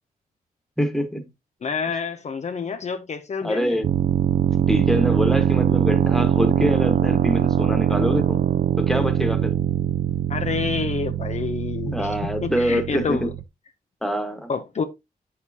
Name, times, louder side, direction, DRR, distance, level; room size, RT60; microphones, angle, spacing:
voice 1, 0.8-1.3 3.4-3.9 4.7-8.4 8.8-9.5 11.8-13.3 14.0-14.5, equal, ahead, 1.5 m, -25 dB
voice 2, 1.6-3.8 10.3-13.3 14.5-14.8, left 5 dB, 45° left, 0.7 m, -28 dB
sound 1, 3.8-13.4, right 9 dB, 60° right, 0.4 m, -22 dB
8.4 x 6.5 x 2.8 m
wide cardioid pair, 110°, 16 cm